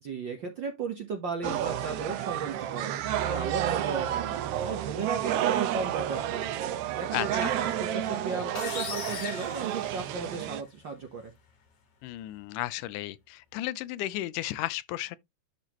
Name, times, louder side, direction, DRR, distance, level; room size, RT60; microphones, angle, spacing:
voice 1, 0.0-2.9 3.2-4.3 4.6-6.5 6.9-11.3, right 5 dB, 65° right, 1.1 m, -35 dB
sound 1, 1.4-10.6, right 11 dB, 85° right, 1.3 m, -31 dB
voice 2, 7.1-7.5 12.0-15.2, left 16 dB, 90° left, 2.1 m, -34 dB
sound 2, 8.6-10.5, left 7 dB, 55° left, 2.4 m, -38 dB
11.5 x 4.1 x 2.9 m
omnidirectional pair, 3.6 m